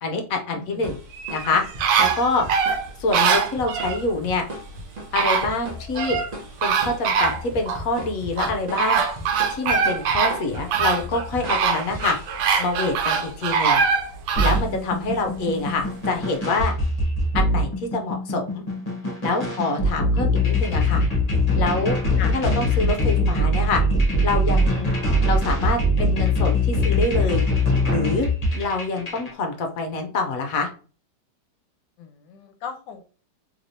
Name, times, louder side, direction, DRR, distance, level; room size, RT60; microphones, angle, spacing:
voice 1, 0.0-1.0 1.3-1.6 2.0-2.4 3.0-4.4 5.1-6.2 6.6-9.0 9.5-12.2 12.6-13.8 14.4-16.7 17.3-18.6 19.2-21.0 21.5-22.0 22.3-23.8 24.2-24.9 25.2-27.4 27.9-28.3 28.5-30.7, left 3 dB, 65° left, 4 dB, 1.0 m, -26 dB
voice 2, 0.5-0.9 22.2-22.3 32.0-33.1, left 6 dB, 80° left, 7 dB, 1.2 m, -37 dB
sound 1, 0.8-12.8, equal, 40° right, 0.6 m, -38 dB
sound 2, 1.1-4.0 4.8-4.9 5.2-6.3 6.6-7.8 8.4-14.6 15.1-15.2, right 6 dB, 80° right, 1.3 m, -23 dB
sound 3, 14.3-29.3, left 1 dB, 25° left, 1.0 m, -22 dB
3.2 x 3.1 x 2.6 m, 0.39 s
omnidirectional pair, 1.9 m